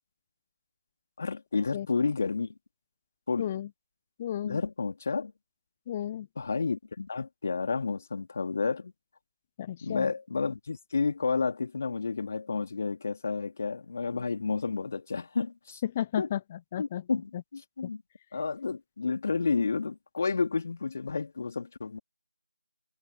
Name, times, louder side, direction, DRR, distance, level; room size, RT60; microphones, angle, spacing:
voice 1, 1.2-2.5 3.3-3.5 4.4-5.3 6.4-8.9 9.8-15.8 16.2-16.3 16.8-18.0 18.3-22.0, left 4 dB, 35° left, 3.7 m, -31 dB
voice 2, 3.4-3.7 4.2-4.6 5.9-6.3 9.6-10.1 15.8-17.0 17.8-17.9, left 11 dB, 15° left, 0.4 m, -33 dB
figure-of-eight pair, 165°, 2 cm